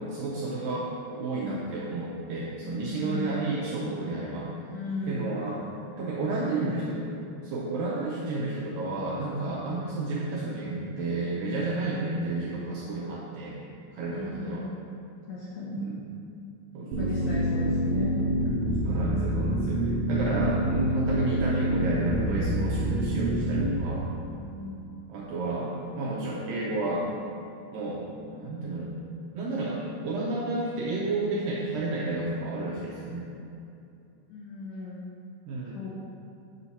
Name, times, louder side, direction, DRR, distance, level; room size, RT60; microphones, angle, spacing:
voice 1, 0.0-4.5 5.1-5.6 6.0-7.1 7.4-13.6 13.9-14.6 15.7-15.9 16.7-17.3 18.8-24.1 25.1-27.1 27.7-28.9 29.3-33.3 35.5-35.8, right 2 dB, 85° right, -4 dB, 2.0 m, -31 dB
voice 2, 2.6-3.4 4.7-5.4 6.3-6.8 14.1-14.8 15.3-15.9 16.9-18.4 24.3-24.9 34.3-35.1 35.7-35.9, left 2 dB, 75° left, -7 dB, 1.9 m, -37 dB
sound 1, 16.9-23.8, right 1 dB, 65° right, 2.2 m, -26 dB
7.8 x 4.2 x 5.7 m, 2.6 s
omnidirectional pair, 4.7 m